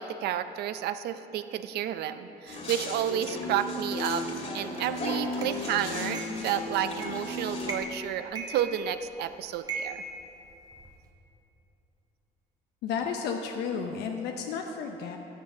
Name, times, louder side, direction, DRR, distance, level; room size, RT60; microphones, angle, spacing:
voice 1, 0.0-4.2 4.5-10.0, right 10 dB, 75° right, 11 dB, 0.5 m, -31 dB
sound 1, 2.5-7.8, left 2 dB, 40° left, 2.3 m, -34 dB
sound 2, 5.4-5.5 6.1-6.5 7.0-7.3 7.6-8.0 8.4-9.2 9.7-10.9, right 3 dB, 20° right, 1.4 m, -38 dB
voice 2, 12.8-15.2, left 6 dB, 80° left, 3 dB, 0.7 m, -32 dB
13.0 x 7.3 x 6.2 m, 3.0 s
cardioid pair, 110°, 17 cm